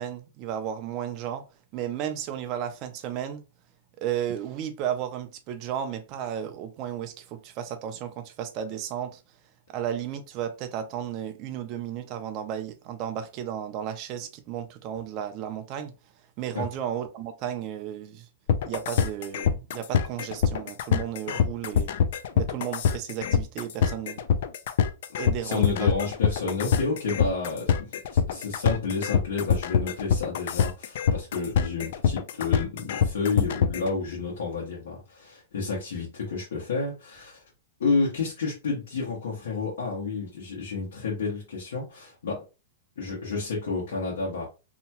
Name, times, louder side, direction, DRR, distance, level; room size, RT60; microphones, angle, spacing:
voice 1, 0.0-1.4 1.7-3.4 4.0-9.2 9.7-15.9 16.4-18.3 18.7-21.9 22.3-24.2 25.2-25.9, right 10 dB, 30° right, 0.4 m, -33 dB
sound 1, 18.5-33.9, left 7 dB, 55° left, 0.3 m, -24 dB
voice 2, 25.4-37.4 37.8-42.4 43.0-44.4, left 4 dB, 90° left, 1.1 m, -30 dB
2.8 x 2.3 x 2.8 m
hypercardioid pair, 160°, 0 cm